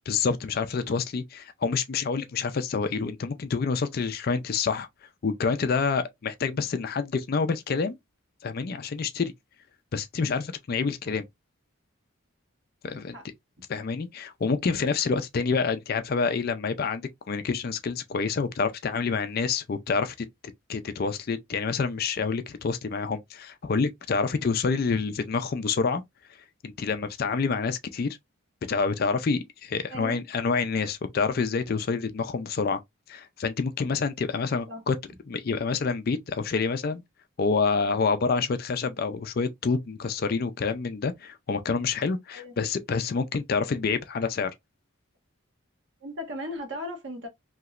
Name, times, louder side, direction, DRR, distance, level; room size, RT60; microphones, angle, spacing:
voice 1, 0.1-4.9 5.2-8.0 8.4-9.3 9.9-11.3 12.8-13.2 13.7-20.3 20.7-26.0 26.6-28.2 28.7-32.8 33.1-35.0 35.3-37.0 37.4-44.5, left 5 dB, 45° left, 0.4 m, -27 dB
voice 2, 12.8-13.2 29.9-30.2 34.3-34.4 34.7-34.8 42.3-42.5 46.0-47.3, left 1 dB, 55° right, 1.2 m, -37 dB
3.0 x 2.8 x 2.4 m
head